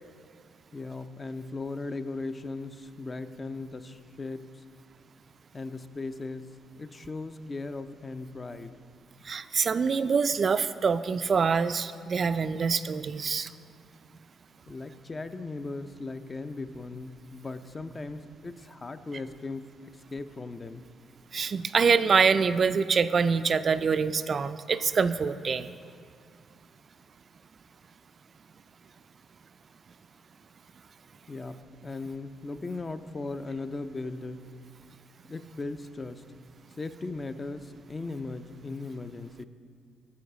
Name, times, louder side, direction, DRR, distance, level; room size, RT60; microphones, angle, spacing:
voice 1, 0.7-4.5 5.5-8.7 14.7-20.9 31.3-34.5 35.3-36.2 36.8-39.4, left 3 dB, 30° left, 10 dB, 0.4 m, -38 dB
voice 2, 9.2-13.5 21.3-25.7, right 5 dB, 45° right, 12 dB, 0.3 m, -25 dB
11.5 x 4.7 x 6.4 m, 2.3 s
cardioid pair, 90°, 0 cm